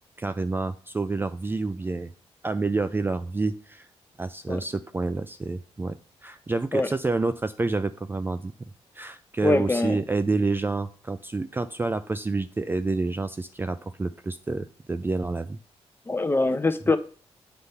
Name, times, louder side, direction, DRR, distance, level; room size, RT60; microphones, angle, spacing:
voice 1, 0.2-2.1 2.4-3.9 4.2-8.5 8.9-15.6, right 3 dB, 20° right, 0.4 m, -28 dB
voice 2, 9.4-10.0 16.1-17.0, left 2 dB, 20° left, 0.7 m, -23 dB
7.9 x 3.4 x 5.6 m
cardioid pair, 80°, 11 cm